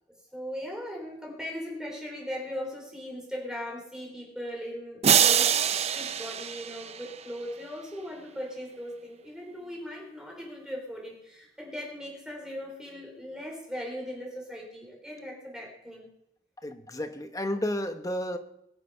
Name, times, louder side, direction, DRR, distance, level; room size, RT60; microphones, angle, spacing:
voice 1, 0.3-16.1, equal, 5° right, -1 dB, 3.8 m, -39 dB
sound 1, 5.0-7.4, right 8 dB, 40° right, 0.6 m, -24 dB
voice 2, 16.6-18.4, left 1 dB, 20° left, 7 dB, 1.2 m, -32 dB
21.5 x 10.5 x 5.7 m, 0.79 s
head